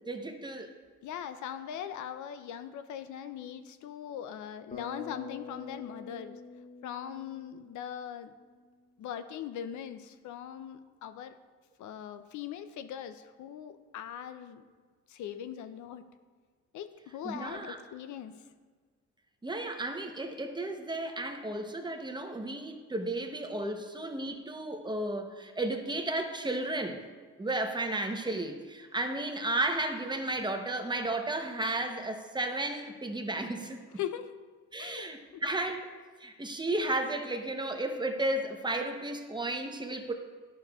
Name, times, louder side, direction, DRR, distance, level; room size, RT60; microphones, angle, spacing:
voice 1, 0.1-0.7 17.2-17.8 19.4-27.0 27.4-33.8 34.7-35.9 36.2-40.1, right 2 dB, 15° right, 5 dB, 0.7 m, -33 dB
voice 2, 1.0-6.4 6.8-8.3 9.0-11.3 11.8-14.6 15.1-16.0 16.7-18.4 34.0-34.3 34.8-35.4, left 9 dB, 75° left, 11 dB, 0.5 m, -40 dB
Bass guitar, 4.7-8.8, left 3 dB, 25° left, 0.9 m, -46 dB
11.5 x 6.5 x 2.3 m, 1.4 s
cardioid pair, 90°, 30 cm